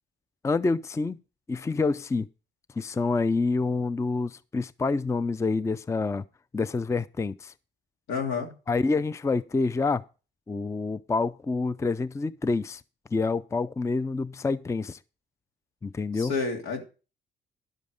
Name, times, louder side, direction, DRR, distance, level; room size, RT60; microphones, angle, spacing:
voice 1, 0.4-1.2 1.5-2.3 2.8-6.2 6.5-7.5 8.7-10.0 10.5-12.8 13.1-15.0 15.8-16.3, left 3 dB, 15° left, 0.4 m, -27 dB
voice 2, 8.1-8.5 16.1-16.8, left 5 dB, 90° left, 2.8 m, -29 dB
11.0 x 7.4 x 5.0 m
cardioid pair, 90°, 20 cm